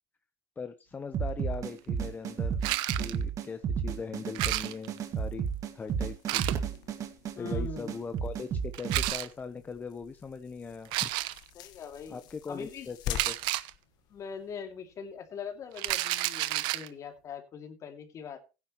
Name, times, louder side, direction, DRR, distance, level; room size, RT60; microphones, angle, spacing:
voice 1, 0.6-2.6 3.0-5.5 5.7-6.5 7.4-8.5 8.7-11.1 12.1-13.4, left 5 dB, 20° left, 9 dB, 0.9 m, -40 dB
sound 1, 1.1-9.1, right 7 dB, 45° right, 1.9 m, -32 dB
sound 2, 2.6-3.2 4.3-5.0 6.3-6.6 8.7-9.3 10.8-11.5 13.1-13.7 15.8-16.9, right 18 dB, 70° right, 0.9 m, -31 dB
sound 3, 4.5-14.6, left 10 dB, 60° left, 1.5 m, -46 dB
voice 2, 7.4-7.9 11.5-12.2 12.5-12.9 14.1-18.4, left 7 dB, 40° left, 6 dB, 2.5 m, -42 dB
16.0 x 9.7 x 3.1 m, 0.30 s
supercardioid pair, 120°, 8 cm